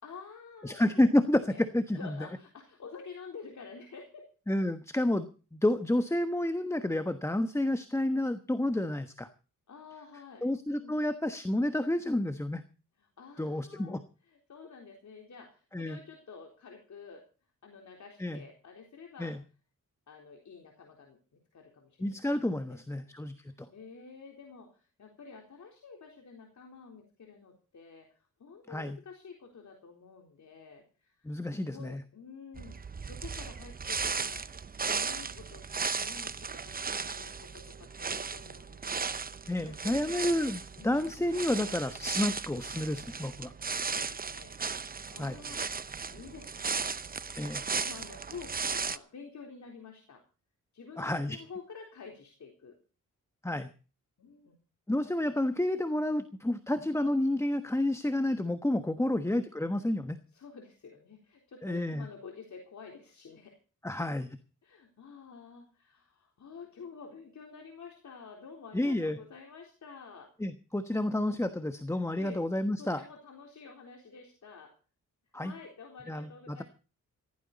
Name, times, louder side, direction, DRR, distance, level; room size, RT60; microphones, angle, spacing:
voice 1, 0.0-1.1 1.5-1.7 1.9-4.2 9.7-10.5 10.8-11.0 13.0-14.0 14.2-17.2 17.6-19.3 20.1-22.3 22.7-23.1 23.4-32.8 33.1-34.4 34.9-35.6 35.9-41.0 43.9-44.6 44.9-45.6 46.1-47.0 47.7-50.2 50.7-52.8 54.2-54.6 59.0-59.3 60.3-63.6 64.6-70.3 72.2-72.4 72.8-74.7 75.4-76.6, left 5 dB, 60° left, 2 dB, 3.9 m, -49 dB
voice 2, 0.6-2.3 4.5-9.3 10.4-12.6 13.4-14.0 15.7-16.0 18.2-18.4 19.2-19.4 22.0-23.7 28.7-29.0 31.2-32.0 39.5-43.5 45.2-45.4 47.4-47.6 51.0-51.4 53.4-53.7 54.9-60.2 61.6-62.1 63.8-64.3 68.7-69.2 70.4-73.0 75.3-75.5 76.1-76.6, left 1 dB, 10° left, 10 dB, 1.2 m, -30 dB
sound 1, 32.6-49.0, right 5 dB, 30° right, 0.7 m, -36 dB
16.0 x 15.0 x 4.2 m, 0.36 s
cardioid pair, 100°, 32 cm